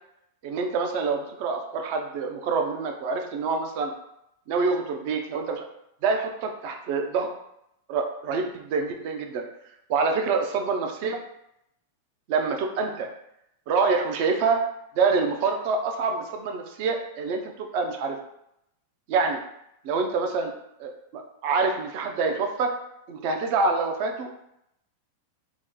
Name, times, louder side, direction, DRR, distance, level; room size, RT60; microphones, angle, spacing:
voice 1, 0.4-3.9 4.5-5.6 6.0-7.3 7.9-9.4 9.9-11.2 12.3-13.1 13.7-14.6 15.0-18.2 19.1-19.4 19.8-20.5 20.8-22.7 23.1-24.3, right 4 dB, 55° right, 4 dB, 0.5 m, -26 dB
3.0 x 2.1 x 3.7 m, 0.80 s
hypercardioid pair, 115°, 0 cm